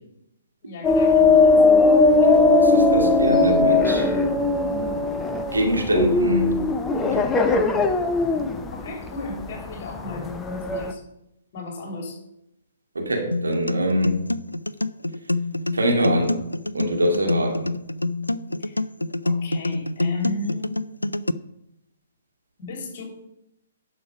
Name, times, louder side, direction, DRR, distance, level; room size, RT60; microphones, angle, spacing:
voice 1, 0.6-1.6 8.7-11.0 11.5-12.2 18.6-18.8 19.2-20.8 22.6-23.0, left 2 dB, 40° left, 1 dB, 3.5 m, -35 dB
sound 1, 0.8-10.9, left 3 dB, 10° left, 0.7 m, -19 dB
voice 2, 2.3-4.1 5.5-6.6 7.0-7.3 12.9-14.2 15.7-16.4 16.7-17.7, equal, 70° right, 1 dB, 2.3 m, -24 dB
sound 2, 13.3-21.3, left 2 dB, 80° left, 0.4 m, -26 dB
11.5 x 6.3 x 5.2 m, 0.83 s
figure-of-eight pair, 125°, 0 cm